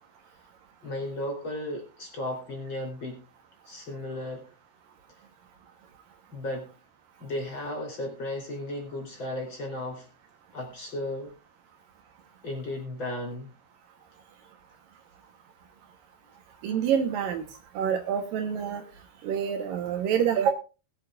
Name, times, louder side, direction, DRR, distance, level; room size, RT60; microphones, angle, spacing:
voice 1, 0.8-3.2 3.7-4.4 6.3-6.7 7.2-10.1 10.5-11.3 12.4-13.6, left 1 dB, 30° left, 1 dB, 3.9 m, -35 dB
voice 2, 16.6-17.4 17.7-18.8 19.2-20.5, right 8 dB, 70° right, 6 dB, 2.5 m, -26 dB
21.0 x 9.0 x 2.4 m, 0.32 s
omnidirectional pair, 4.5 m